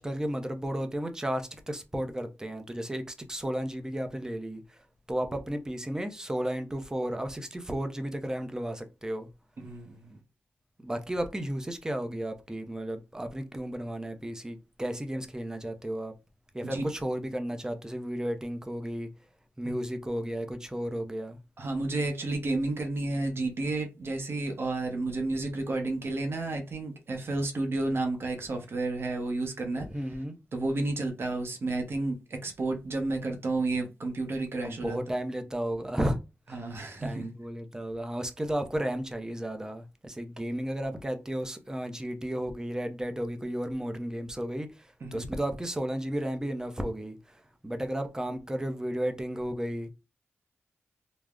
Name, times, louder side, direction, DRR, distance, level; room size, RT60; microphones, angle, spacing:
voice 1, 0.0-4.8 5.1-9.3 10.8-16.1 16.5-19.1 19.6-21.4 29.8-30.4 34.6-36.2 36.5-36.7 37.0-49.9, right 1 dB, 15° right, 0.5 m, -33 dB
voice 2, 9.6-10.2 16.7-16.8 21.6-29.9 30.5-35.0 36.5-37.3 45.0-45.3, right 2 dB, 60° right, 0.6 m, -31 dB
3.4 x 2.0 x 2.3 m
cardioid pair, 75°, 5 cm